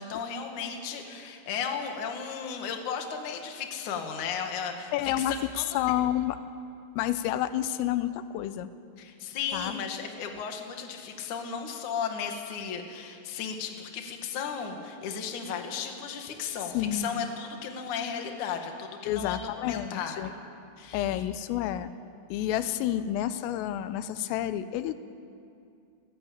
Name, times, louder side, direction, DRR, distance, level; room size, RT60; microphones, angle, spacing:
voice 1, 0.0-5.6 9.0-20.3 20.8-21.2, left 7 dB, 50° left, 4 dB, 2.6 m, -35 dB
voice 2, 4.9-5.3 5.7-6.4 7.0-8.7 9.5-9.7 16.7-17.3 19.1-20.3 20.9-21.9 22.3-25.0, left 12 dB, 90° left, 12 dB, 3.4 m, -29 dB
28.0 x 17.0 x 8.7 m, 2.5 s
omnidirectional pair, 5.8 m